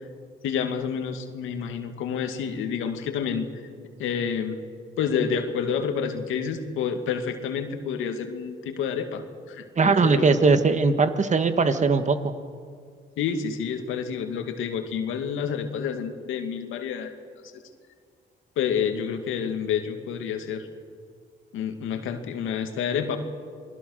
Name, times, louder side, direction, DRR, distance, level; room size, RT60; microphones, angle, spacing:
voice 1, 0.4-3.5 4.0-4.6 5.0-10.4 13.2-17.1 18.6-20.6 21.5-23.2, left 7 dB, 85° left, 6 dB, 2.2 m, -29 dB
voice 2, 9.8-12.2, right 4 dB, 35° right, 9 dB, 1.8 m, -20 dB
28.0 x 21.0 x 6.6 m, 2.1 s
cardioid pair, 90°, 20 cm